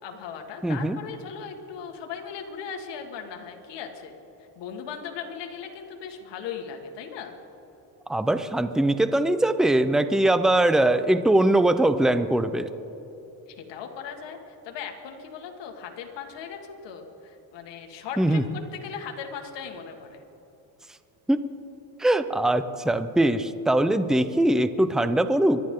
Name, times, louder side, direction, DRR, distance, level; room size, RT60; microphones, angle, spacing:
voice 1, 0.0-4.1 4.6-7.4 13.6-20.2, left 7 dB, 75° left, 3 dB, 2.0 m, -38 dB
voice 2, 0.6-1.0 8.1-12.7 18.2-18.4 21.3-21.4 22.0-25.6, right 1 dB, ahead, 11 dB, 0.7 m, -21 dB
24.5 x 11.5 x 3.8 m, 2.9 s
supercardioid pair, 80°, 44 cm